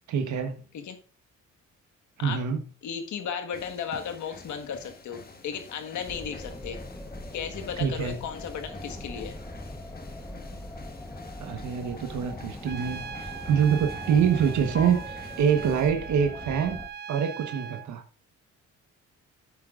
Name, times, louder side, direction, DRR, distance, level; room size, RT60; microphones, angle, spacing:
voice 1, 0.1-0.6 2.2-2.6 7.8-8.2 11.4-16.8 17.1-18.0, right 7 dB, 70° right, 6 dB, 1.2 m, -25 dB
voice 2, 2.8-6.8 7.3-9.4, left 7 dB, 75° left, 6 dB, 1.6 m, -35 dB
sound 1, 3.5-15.9, left 4 dB, 30° left, 1.6 m, -48 dB
sound 2, 6.1-16.9, left 1 dB, 10° left, 1.1 m, -40 dB
Trumpet, 12.7-17.9, right 8 dB, 35° right, 0.5 m, -40 dB
11.0 x 8.4 x 2.5 m, 0.39 s
cardioid pair, 90°, 30 cm